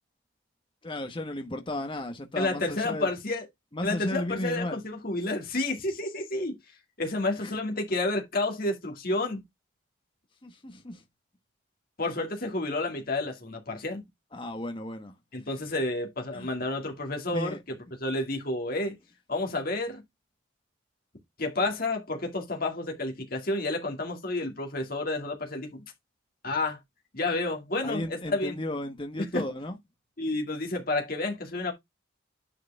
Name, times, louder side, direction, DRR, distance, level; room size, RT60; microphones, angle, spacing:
voice 1, 0.8-3.1 3.7-4.8 7.4-7.6 10.4-11.0 14.3-15.1 16.3-16.5 17.3-17.6 27.8-29.8, left 1 dB, 25° left, 1.0 m, -34 dB
voice 2, 2.4-3.5 3.8-6.6 7.0-9.4 12.0-14.0 15.3-19.0 19.3-20.0 21.4-25.8 26.4-26.8 27.1-28.6 29.3-29.4 30.2-31.7, left 2 dB, 45° left, 2.2 m, -30 dB
10.0 x 4.7 x 3.4 m
head